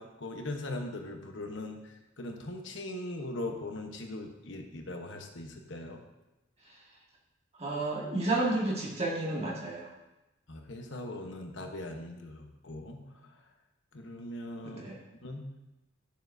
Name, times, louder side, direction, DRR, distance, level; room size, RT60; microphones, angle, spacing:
voice 1, 0.0-6.0 10.5-13.4 13.9-14.8 15.2-15.4, left 2 dB, 70° left, 3 dB, 1.0 m, -40 dB
voice 2, 7.6-9.9 14.6-15.0, right 2 dB, 30° right, -3 dB, 1.7 m, -31 dB
11.5 x 6.8 x 2.7 m, 1.0 s
head